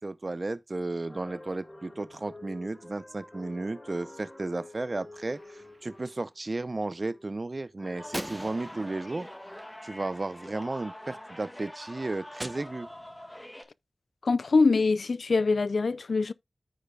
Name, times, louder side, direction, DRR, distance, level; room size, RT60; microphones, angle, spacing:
voice 1, 0.0-9.3 9.8-12.9, right 2 dB, 45° right, 0.6 m, -34 dB
sound 1, 1.1-6.3 6.6-7.3 7.8-8.5, left 1 dB, 35° left, 3.9 m, -48 dB
Gunshot gunfire, 5.2-6.2 8.1-10.5 12.4-13.4, right 1 dB, 20° right, 1.0 m, -43 dB
sound 2, 8.0-13.6, left 1 dB, 15° left, 1.9 m, -45 dB
voice 2, 14.2-16.3, left 4 dB, 80° left, 0.4 m, -24 dB
14.0 x 4.9 x 2.3 m
wide cardioid pair, 60°, 0 cm